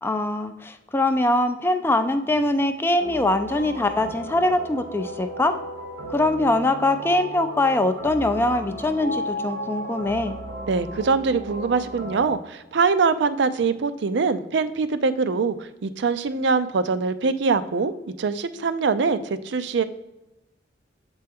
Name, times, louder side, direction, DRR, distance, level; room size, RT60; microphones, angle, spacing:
voice 1, 0.0-5.6 6.1-10.4, left 2 dB, 10° left, 8 dB, 0.3 m, -22 dB
sound 1, 3.0-12.3, equal, 90° right, 1.2 m, -34 dB
voice 2, 10.7-19.8, right 4 dB, 65° right, 13 dB, 0.4 m, -23 dB
7.5 x 4.4 x 3.5 m, 0.98 s
head